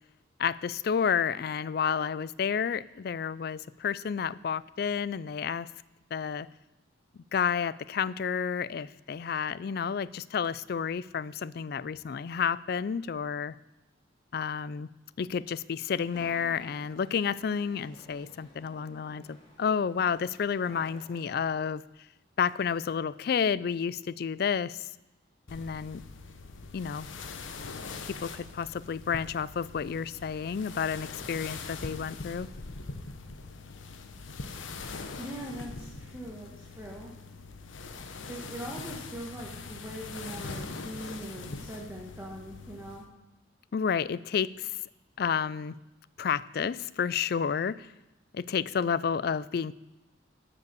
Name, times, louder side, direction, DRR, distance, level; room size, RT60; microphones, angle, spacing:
voice 1, 0.4-5.7 6.1-6.5 7.3-13.5 14.3-14.9 15.2-21.8 22.4-24.8 25.5-26.0 26.7-27.1 28.2-32.5 43.7-44.8 45.2-45.7 46.2-47.9 48.3-49.7, left 7 dB, 55° left, 19 dB, 0.3 m, -30 dB
sound 1, 15.9-21.4, equal, 25° left, 2.3 m, -54 dB
sound 2, 25.5-43.0, left 4 dB, 85° left, 0.9 m, -42 dB
voice 2, 35.1-37.1 38.3-43.0, right 1 dB, 15° right, -3 dB, 1.4 m, -41 dB
11.5 x 7.0 x 6.8 m, 0.98 s
head